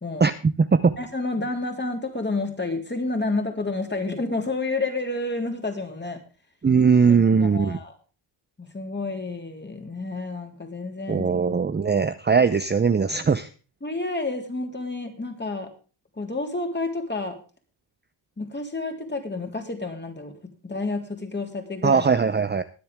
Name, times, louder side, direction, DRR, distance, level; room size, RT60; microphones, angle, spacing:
voice 1, 0.2-0.9 6.6-7.8 11.1-13.5 21.8-22.6, right 5 dB, 20° right, 11 dB, 0.7 m, -20 dB
voice 2, 1.0-6.2 7.4-7.9 8.6-12.0 13.8-15.7 16.2-17.4 18.4-20.3 20.6-22.1, left 3 dB, 20° left, 4 dB, 3.6 m, -30 dB
22.0 x 7.7 x 3.6 m, 0.35 s
cardioid pair, 95°, 49 cm